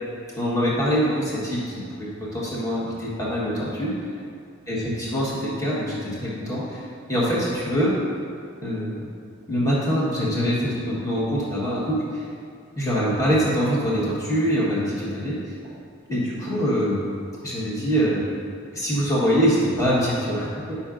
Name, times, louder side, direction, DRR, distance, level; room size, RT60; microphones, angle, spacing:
voice 1, 0.4-3.9 4.7-6.8 7.1-7.9 8.6-9.0 9.5-12.0 12.8-15.4 15.6-15.7 16.1-17.0 17.4-18.2 18.7-20.8, equal, 15° left, -8 dB, 1.3 m, -24 dB
9.7 x 5.7 x 2.5 m, 2.3 s
head